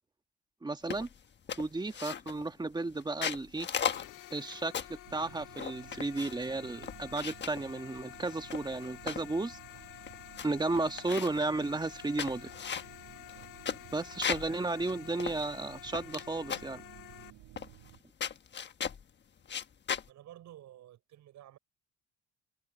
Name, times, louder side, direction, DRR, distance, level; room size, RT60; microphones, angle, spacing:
voice 1, 0.6-1.1 1.6-3.7 4.3-9.6 10.4-12.5 13.9-16.8, right 2 dB, 15° right, 1.4 m, -34 dB
sound 1, 0.9-1.2 1.5-2.5 3.0-5.0 5.5-6.5 6.8-7.6 8.3-9.3 9.8-9.9 10.1-10.5 10.7-11.4 11.9-14.5 14.9-15.0 15.2-16.2 16.5-16.8 17.6-17.9 18.2-19.0 19.4-20.1, left 7 dB, 35° left, 1.3 m, -37 dB
sound 2, 3.9-17.3, left 16 dB, 75° left, 2.0 m, -50 dB
sound 3, 5.0-18.0, right 18 dB, 90° right, 7.3 m, -55 dB
voice 2, 20.1-21.6, right 12 dB, 65° right, 6.0 m, -53 dB
cardioid pair, 125°, 32 cm